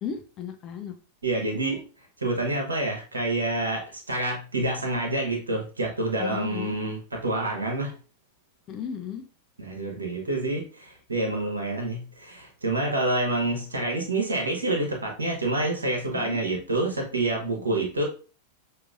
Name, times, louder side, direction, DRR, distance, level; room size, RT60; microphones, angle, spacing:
voice 1, 0.0-0.9 1.5-1.8 6.2-6.8 8.7-9.2 16.1-16.4 17.6-17.9, left 7 dB, 35° left, 6 dB, 0.6 m, -36 dB
voice 2, 1.2-1.8 2.2-7.9 9.6-18.0, right 2 dB, 75° right, 1 dB, 1.1 m, -27 dB
6.0 x 2.7 x 2.4 m, 0.37 s
figure-of-eight pair, 90°, 0 cm